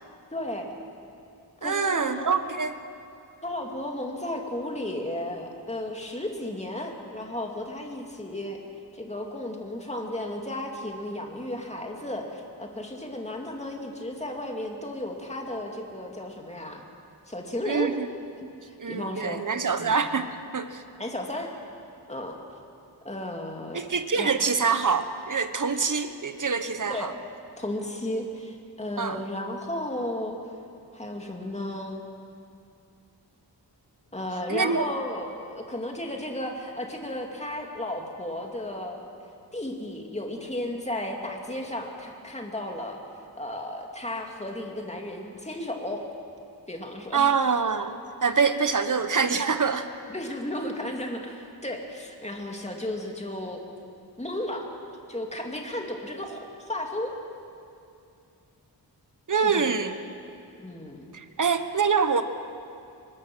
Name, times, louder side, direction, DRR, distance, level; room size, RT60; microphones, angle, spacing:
voice 1, 0.3-0.7 1.6-2.4 3.4-8.6 8.9-16.8 17.3-17.9 18.4-19.4 19.8-20.0 21.0-21.5 22.1-22.4 23.0-23.8 24.1-24.3 26.9-27.2 27.6-30.4 30.9-32.0 34.1-39.0 39.5-43.0 43.4-46.1 46.7-47.3 50.1-53.6 54.2-54.7 55.1-57.1 59.4-60.2 60.6-61.0, left 1 dB, 15° left, 1 dB, 2.4 m, -34 dB
voice 2, 1.6-2.8 17.7-18.1 18.8-20.8 23.7-27.1 29.0-29.2 34.5-34.8 47.1-49.9 59.3-59.9 61.1-62.2, right 5 dB, 45° right, 9 dB, 1.2 m, -25 dB
24.0 x 20.0 x 6.2 m, 2.5 s
wide cardioid pair, 115°, 42 cm